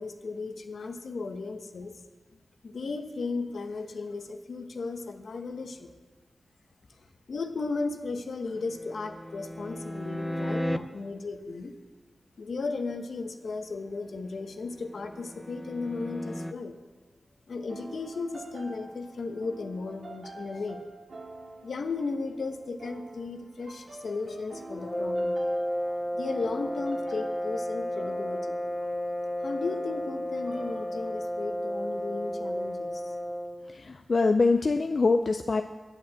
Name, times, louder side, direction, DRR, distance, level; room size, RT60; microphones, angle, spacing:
voice 1, 0.0-2.0 2.6-5.9 7.3-11.7 12.4-16.8 17.5-20.8 21.6-25.4 26.1-28.6 29.4-33.0, left 3 dB, 75° left, 6 dB, 1.1 m, -35 dB
sound 1, 8.5-10.8 14.2-16.5, equal, 5° left, 0.7 m, -36 dB
sound 2, 17.7-31.4, right 2 dB, 75° right, 2.0 m, -47 dB
sound 3, 24.7-33.6, equal, 35° left, 2.3 m, -32 dB
voice 2, 33.7-35.6, left 3 dB, 55° left, 6 dB, 0.5 m, -24 dB
9.6 x 8.9 x 7.5 m, 1.3 s
wide cardioid pair, 80°, 0 cm